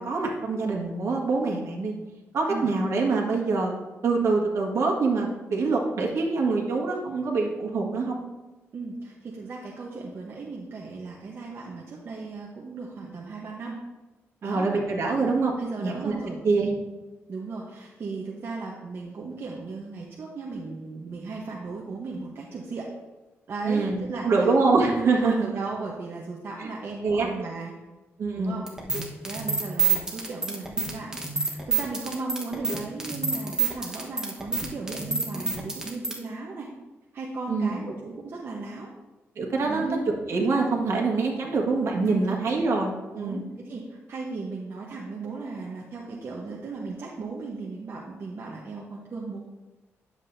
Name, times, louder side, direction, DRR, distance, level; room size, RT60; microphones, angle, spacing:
voice 1, 0.0-1.9 2.3-3.7 4.0-8.2 14.4-15.5 15.8-16.1 16.4-16.7 23.6-25.4 26.6-26.7 27.0-27.3 28.2-28.5 37.5-37.8 39.3-40.0 40.3-43.4, right 3 dB, 65° right, -1 dB, 1.6 m, -25 dB
voice 2, 8.7-13.8 14.4-14.7 15.2-16.4 17.3-22.9 23.5-24.5 25.2-27.7 28.3-28.6 29.2-36.7 37.1-38.9 39.6-40.0 40.4-40.5 42.0-42.4 43.1-49.4, right 3 dB, 50° right, -2 dB, 1.0 m, -36 dB
sound 1, 28.7-36.2, right 5 dB, 10° right, 1.2 m, -27 dB
10.5 x 7.5 x 2.7 m, 1.1 s
wide cardioid pair, 130°, 5 cm